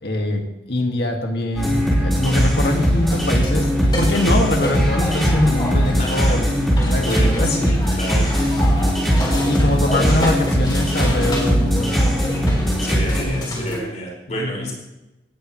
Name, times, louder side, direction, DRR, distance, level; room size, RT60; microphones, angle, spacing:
voice 1, 0.0-3.7 4.0-6.5 6.8-7.5 8.9-9.1 9.5-11.9 13.2-13.8 14.3-14.7, left 1 dB, 65° left, 3 dB, 1.8 m, -23 dB
sound 1, 1.5-13.2, equal, ahead, 4.0 m, -19 dB
sound 2, 2.2-13.8, left 1 dB, 25° left, 4.0 m, -30 dB
voice 2, 6.0-6.4 7.0-8.3 12.8-14.7, equal, 40° left, -2 dB, 5.0 m, -29 dB
18.5 x 12.5 x 3.1 m, 1.0 s
head